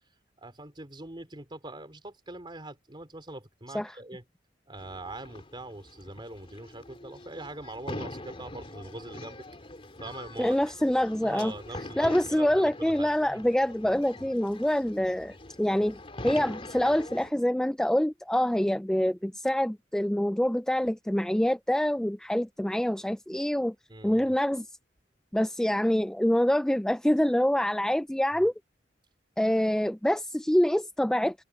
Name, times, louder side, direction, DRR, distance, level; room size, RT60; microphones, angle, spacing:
voice 1, 0.4-4.2 4.7-9.5 10.0-10.6 11.2-13.4 14.2-14.3 23.9-24.3, right 2 dB, 25° right, 3.3 m, -42 dB
sound 1, 4.8-17.3, left 1 dB, 30° left, 3.6 m, -43 dB
voice 2, 10.4-11.5 12.0-16.0 16.2-23.7 24.0-24.7 25.3-28.5 29.4-31.4, left 1 dB, 5° left, 0.3 m, -26 dB
head